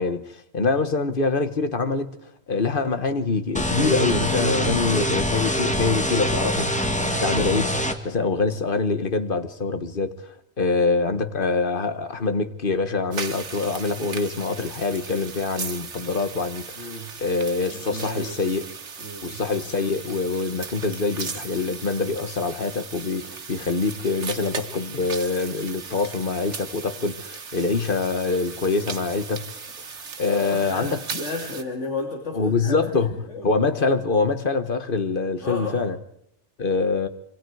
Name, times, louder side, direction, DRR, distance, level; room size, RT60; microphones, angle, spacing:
voice 1, 0.0-2.2 2.5-6.9 7.2-7.7 8.0-10.3 10.6-16.9 17.2-18.7 19.2-29.6 30.2-31.0 32.3-33.1 33.4-36.0 36.6-37.1, left 4 dB, 50° left, 1.6 m, -25 dB
sound 1, 3.6-8.0, equal, 5° left, 1.8 m, -24 dB
sound 2, 13.1-31.6, right 5 dB, 85° right, 1.8 m, -37 dB
voice 2, 16.8-17.1 17.7-18.5 19.0-19.4 30.3-33.5 35.4-35.9, left 3 dB, 85° left, 3.0 m, -33 dB
26.5 x 24.5 x 4.9 m
omnidirectional pair, 1.2 m